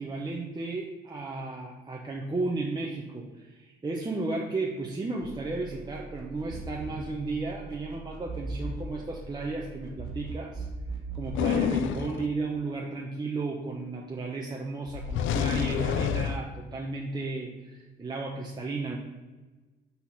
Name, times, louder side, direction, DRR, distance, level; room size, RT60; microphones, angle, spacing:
voice 1, 0.0-10.7 11.1-19.0, right 3 dB, 20° right, -2 dB, 0.9 m, -34 dB
sound 1, 5.2-12.0, right 2 dB, ahead, 2.3 m, -39 dB
sound 2, 11.3-12.3 14.9-16.4, left 8 dB, 75° left, 0.5 m, -28 dB
6.2 x 4.2 x 5.7 m, 1.2 s
cardioid pair, 90°, 20 cm